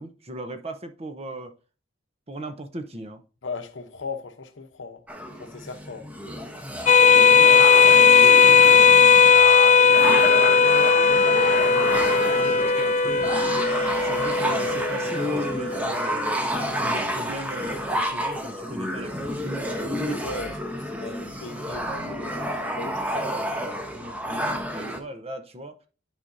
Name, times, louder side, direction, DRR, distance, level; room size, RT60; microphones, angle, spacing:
voice 1, 0.0-1.5 2.3-3.2 11.7-12.0 12.3-13.5 14.0-16.4 16.8-20.2 20.9-21.0 23.9-25.8, right 1 dB, 30° right, 0.8 m, -38 dB
voice 2, 3.4-5.0 5.4-6.1 6.8-10.7 20.0-23.3, left 3 dB, 70° left, 0.9 m, -38 dB
sound 1, 5.1-25.0, equal, 10° right, 0.9 m, -30 dB
sound 2, 6.9-15.8, left 5 dB, 35° left, 0.4 m, -17 dB
Trumpet, 8.3-15.9, right 7 dB, 60° right, 1.0 m, -39 dB
10.5 x 5.0 x 2.7 m
head